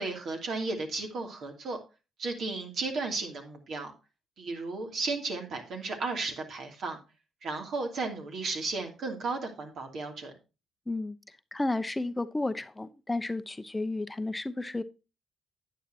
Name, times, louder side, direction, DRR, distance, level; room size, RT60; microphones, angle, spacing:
voice 1, 0.0-1.8 2.2-3.9 4.4-7.0 7.4-10.3, right 3 dB, 65° right, 2 dB, 2.8 m, -34 dB
voice 2, 11.5-14.8, left 2 dB, 20° left, 12 dB, 0.8 m, -32 dB
10.0 x 8.9 x 2.8 m, 0.29 s
hypercardioid pair, 50°, 0 cm